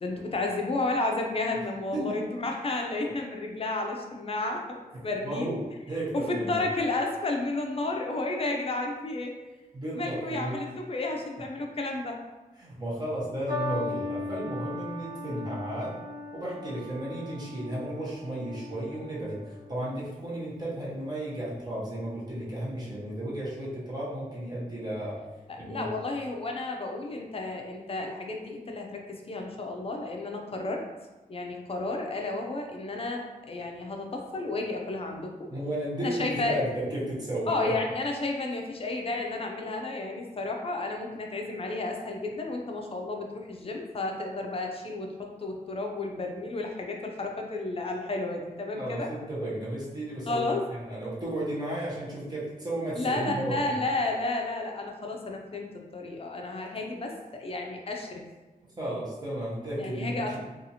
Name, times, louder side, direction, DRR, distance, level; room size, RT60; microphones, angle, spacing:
voice 1, 0.0-4.8 5.0-5.5 6.1-9.3 9.9-12.2 25.5-30.8 31.3-35.5 36.0-36.6 37.5-49.1 50.3-50.7 52.9-58.2 59.8-60.4, left 2 dB, 40° left, 2 dB, 0.4 m, -32 dB
voice 2, 5.2-5.6 5.9-6.6 9.7-10.6 12.6-15.9 16.3-25.2 25.6-25.8 35.5-37.7 48.7-53.7 58.8-60.4, right 1 dB, 25° right, -8 dB, 0.8 m, -34 dB
sound 1, 13.5-20.0 20.8-21.3, left 2 dB, 65° right, 0.9 m, -38 dB
2.7 x 2.4 x 2.7 m, 1.1 s
wide cardioid pair, 160°, 15 cm